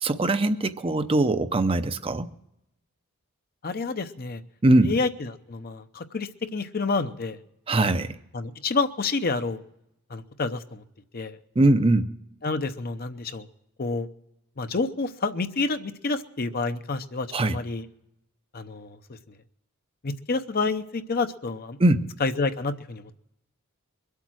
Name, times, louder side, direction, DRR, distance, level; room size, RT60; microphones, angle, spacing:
voice 1, 0.0-2.3 4.6-5.0 7.7-8.2 11.6-12.1 17.3-17.6 21.8-22.1, right 2 dB, 25° right, 10 dB, 0.6 m, -21 dB
voice 2, 3.6-4.4 4.8-7.4 8.3-9.6 10.1-10.8 11.1-11.4 12.4-13.5 13.8-14.1 14.6-17.8 18.5-19.0 20.0-21.8 22.2-23.1, left 3 dB, 45° left, 10 dB, 0.7 m, -29 dB
22.5 x 8.3 x 6.2 m, 0.83 s
head